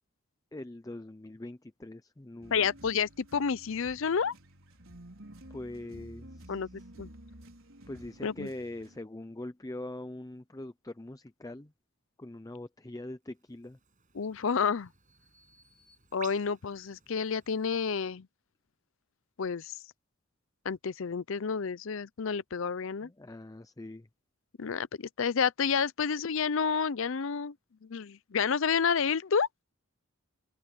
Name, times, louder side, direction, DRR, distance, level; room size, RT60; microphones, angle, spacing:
voice 1, 0.5-2.7 5.5-6.6 7.9-11.7 12.2-13.8 23.0-24.1, left 1 dB, 15° left, 0.5 m, -42 dB
sound 1, 2.4-9.0, right 1 dB, 65° right, 5.5 m, -51 dB
voice 2, 2.5-4.3 6.5-6.7 7.0-7.1 8.2-8.5 14.1-14.9 16.1-18.3 19.4-19.8 20.6-23.1 24.6-27.5 27.8-29.5, left 6 dB, 65° left, 0.5 m, -30 dB
Bird vocalization bird call bird song, 13.7-17.9, right 7 dB, 35° right, 7.3 m, -54 dB
head